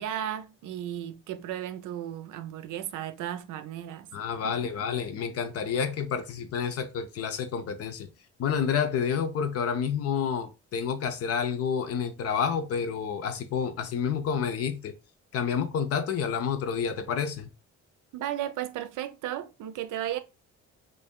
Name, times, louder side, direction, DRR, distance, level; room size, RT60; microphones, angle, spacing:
voice 1, 0.0-4.1 4.4-4.5 18.1-20.2, right 11 dB, 85° right, 0.6 m, -34 dB
voice 2, 4.1-8.1 8.4-14.9 15.3-17.5, left 7 dB, 55° left, 0.6 m, -29 dB
3.2 x 2.7 x 3.6 m
cardioid pair, 170°, 30 cm